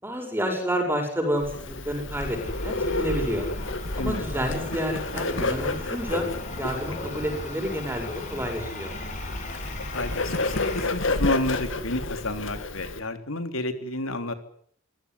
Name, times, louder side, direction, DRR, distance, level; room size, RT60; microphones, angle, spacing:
voice 1, 0.0-3.5 4.0-6.3 6.6-8.9, equal, 10° right, 4 dB, 7.7 m, -29 dB
Bird, 1.4-13.0, left 2 dB, 65° left, 2.5 m, -31 dB
sound 1, 2.1-10.9, left 1 dB, 35° left, 7.5 m, -36 dB
voice 2, 9.8-14.3, left 2 dB, 85° left, 8 dB, 3.4 m, -30 dB
26.0 x 16.5 x 9.9 m, 0.62 s
head